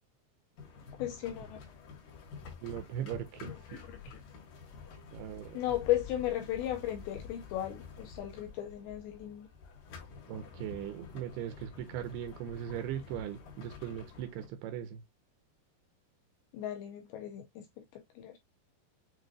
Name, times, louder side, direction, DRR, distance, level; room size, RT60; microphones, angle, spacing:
sound 1, 0.6-14.5, left 5 dB, 65° left, 2.7 m, -49 dB
voice 1, 1.0-1.6 3.4-4.1 5.5-9.5 16.5-18.4, left 13 dB, 85° left, 2.2 m, -36 dB
voice 2, 2.6-3.8 5.1-5.6 10.3-15.0, right 10 dB, 80° right, 2.3 m, -39 dB
7.4 x 2.5 x 2.5 m
omnidirectional pair, 4.8 m